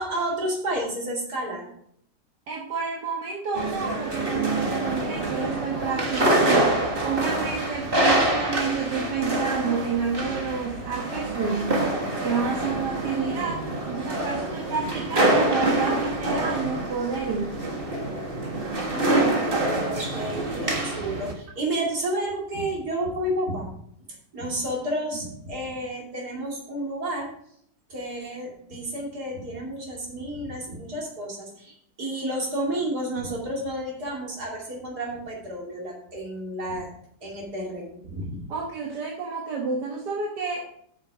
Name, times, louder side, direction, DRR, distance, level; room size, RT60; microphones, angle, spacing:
voice 1, 0.0-1.7 18.9-23.7 24.3-27.3 27.9-36.9 37.2-38.4, right 1 dB, 70° right, -2 dB, 3.2 m, -31 dB
voice 2, 2.5-11.9 12.2-17.6 38.5-40.7, right 5 dB, 85° right, -1 dB, 1.9 m, -30 dB
sound 1, 3.5-21.3, right 1 dB, 35° right, 1.8 m, -26 dB
8.9 x 6.7 x 4.9 m, 0.69 s
omnidirectional pair, 1.8 m